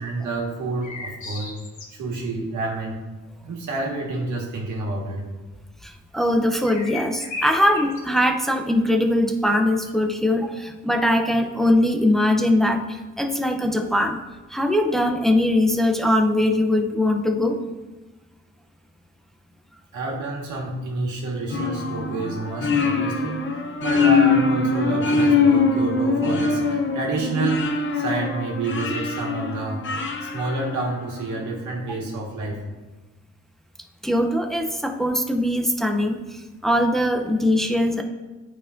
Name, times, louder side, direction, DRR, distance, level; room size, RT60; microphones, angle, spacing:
voice 1, 0.0-1.5 1.9-3.0 3.4-5.2 19.9-29.8 30.2-32.6, right 3 dB, 75° right, -1 dB, 1.7 m, -29 dB
sound 1, 0.8-2.2 6.6-8.2, left 3 dB, 70° left, 1.4 m, -35 dB
voice 2, 5.8-14.2 14.5-17.6 34.0-38.0, left 1 dB, ahead, 4 dB, 0.6 m, -21 dB
sound 2, 21.5-31.3, left 4 dB, 40° left, 0.7 m, -23 dB
8.9 x 4.4 x 2.6 m, 1.2 s
cardioid pair, 90°, 30 cm